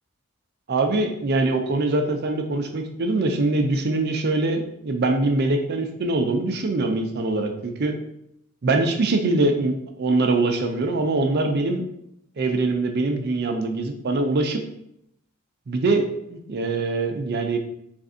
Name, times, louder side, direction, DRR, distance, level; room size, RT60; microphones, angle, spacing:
voice 1, 0.7-7.9 8.6-11.8 12.4-14.6 15.7-17.6, right 2 dB, 50° right, 5 dB, 0.5 m, -23 dB
3.3 x 2.6 x 3.7 m, 0.77 s
head